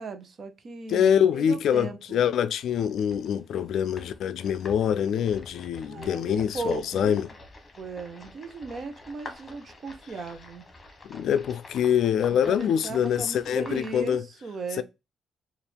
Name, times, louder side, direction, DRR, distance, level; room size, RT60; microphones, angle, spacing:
voice 1, 0.0-2.2 5.9-7.2 7.8-10.6 12.3-14.8, right 3 dB, 50° right, 0.8 m, -37 dB
voice 2, 0.9-7.3 11.0-14.2 14.8-14.9, left 8 dB, 70° left, 0.3 m, -25 dB
sound 1, 2.6-14.2, left 2 dB, 25° left, 1.2 m, -48 dB
4.3 x 2.5 x 3.4 m
cardioid pair, 90°, 0 cm